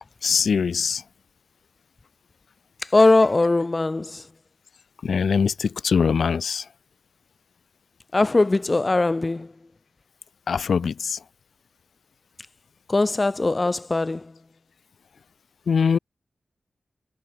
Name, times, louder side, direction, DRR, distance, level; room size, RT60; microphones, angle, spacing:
voice 1, 0.2-1.0 5.0-6.7 10.5-11.2 15.7-16.0, left 6 dB, 80° left, 0.5 m, -22 dB
voice 2, 2.9-4.2 8.1-9.5 12.9-14.2, left 2 dB, 25° left, 1.3 m, -20 dB
wide cardioid pair, 150°, 0 cm